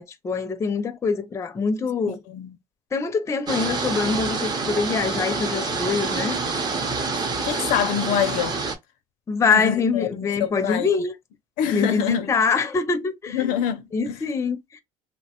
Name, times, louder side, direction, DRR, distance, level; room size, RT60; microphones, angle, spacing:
voice 1, 0.0-2.2 2.9-6.4 9.3-11.1 11.7-13.5 13.9-14.8, left 5 dB, 20° left, 0.4 m, -24 dB
voice 2, 2.1-2.6 7.2-8.6 9.5-10.9 11.6-12.3 13.3-14.2, left 9 dB, 80° left, 0.4 m, -26 dB
sound 1, 3.5-8.8, right 4 dB, 30° right, 0.6 m, -27 dB
3.0 x 2.0 x 2.8 m
cardioid pair, 130°, 14 cm